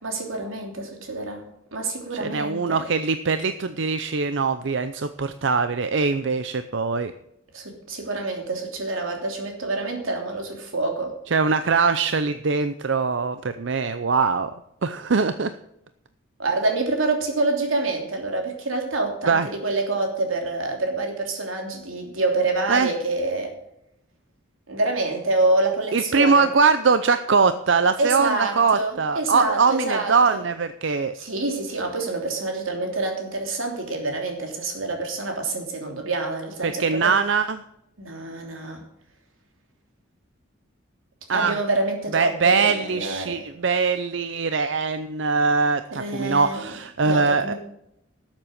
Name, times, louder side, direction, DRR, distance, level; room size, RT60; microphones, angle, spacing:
voice 1, 0.0-2.8 7.5-11.1 16.4-23.5 24.7-26.5 28.0-30.4 31.1-37.1 38.0-38.8 41.3-42.6 42.9-43.4 45.9-46.7 47.0-47.5, right 2 dB, 90° right, 2 dB, 3.1 m, -27 dB
voice 2, 2.2-7.1 11.3-14.5 14.8-15.5 19.3-19.5 22.7-22.9 25.9-31.2 36.6-37.6 41.3-41.6 42.1-47.5, right 4 dB, 65° right, 10 dB, 0.6 m, -22 dB
13.0 x 7.4 x 6.5 m, 0.79 s
head